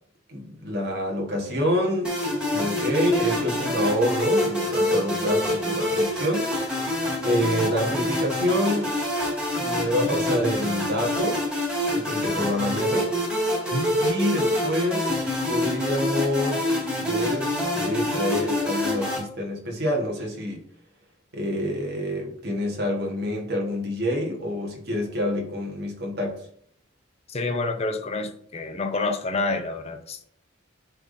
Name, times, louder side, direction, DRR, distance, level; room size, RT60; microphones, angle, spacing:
voice 1, 0.3-2.2 2.5-6.9 7.2-8.9 9.6-11.4 11.9-13.1 14.0-20.6 21.3-26.5, equal, 55° right, 1 dB, 1.5 m, -27 dB
sound 1, 2.0-19.2, left 1 dB, 5° right, 2.1 m, -26 dB
voice 2, 27.3-30.2, left 3 dB, 35° left, 5 dB, 0.6 m, -28 dB
10.0 x 3.4 x 2.7 m, 0.63 s
head